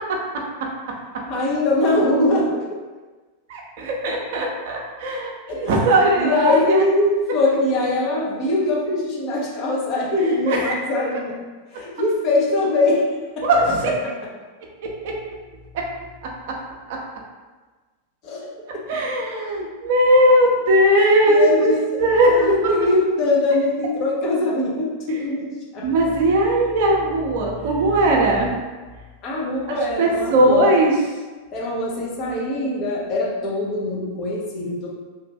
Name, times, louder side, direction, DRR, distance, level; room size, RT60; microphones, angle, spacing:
voice 1, 1.3-2.8 5.5-11.4 11.7-13.1 13.4-13.5 14.0-14.1 18.2-18.8 21.3-25.9 29.2-30.7 31.5-34.9, left 2 dB, 35° left, -4 dB, 0.8 m, -22 dB
voice 2, 3.5-6.8 10.5-10.7 13.4-13.9 15.0-15.1 16.9-17.0 18.9-21.7 22.0-22.3 25.8-28.5 30.0-30.9, right 1 dB, 50° right, 0 dB, 0.6 m, -18 dB
2.9 x 2.4 x 3.4 m, 1.3 s
figure-of-eight pair, 90°, 0 cm